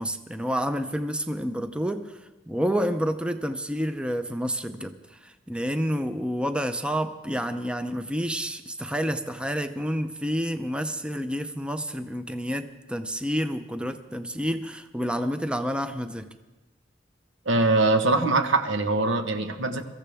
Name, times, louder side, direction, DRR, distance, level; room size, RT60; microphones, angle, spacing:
voice 1, 0.0-2.1 2.5-5.0 5.5-16.3, equal, 5° right, 9 dB, 0.6 m, -29 dB
voice 2, 17.4-19.8, right 2 dB, 85° right, 7 dB, 1.2 m, -22 dB
23.5 x 14.5 x 3.5 m, 1.1 s
head